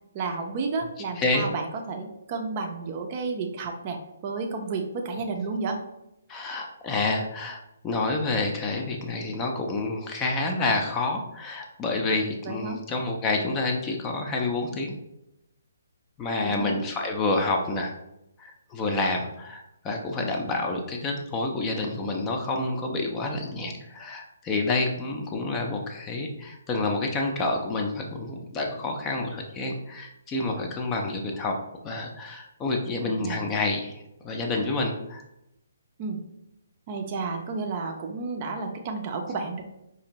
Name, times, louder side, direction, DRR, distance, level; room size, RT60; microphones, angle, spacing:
voice 1, 0.1-5.8 12.4-12.8 16.4-16.7 33.2-33.5 36.0-36.2 36.9-39.6, right 4 dB, 35° right, 3 dB, 0.5 m, -31 dB
voice 2, 1.2-1.5 6.3-7.6 7.8-14.9 16.2-17.9 18.4-31.5 31.8-35.2, left 2 dB, 20° left, 2 dB, 0.5 m, -28 dB
4.8 x 2.6 x 2.9 m, 0.86 s
figure-of-eight pair, 135°, 0 cm